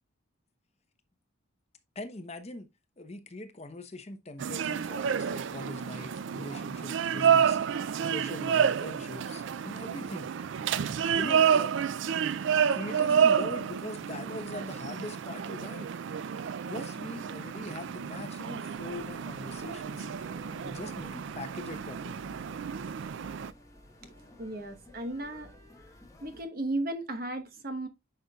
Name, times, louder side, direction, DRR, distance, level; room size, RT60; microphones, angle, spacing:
voice 1, 1.9-2.7 3.0-7.6 8.0-10.3 11.1-11.7 12.7-15.9 16.7-20.1 20.6-22.2, left 2 dB, 30° left, 0.8 m, -41 dB
sound 1, 4.4-23.5, right 7 dB, 60° right, 0.3 m, -29 dB
sound 2, 18.7-26.4, left 1 dB, 15° left, 1.2 m, -53 dB
voice 2, 24.4-25.5 26.2-27.9, right 1 dB, 45° right, 1.1 m, -35 dB
10.5 x 5.4 x 2.3 m
head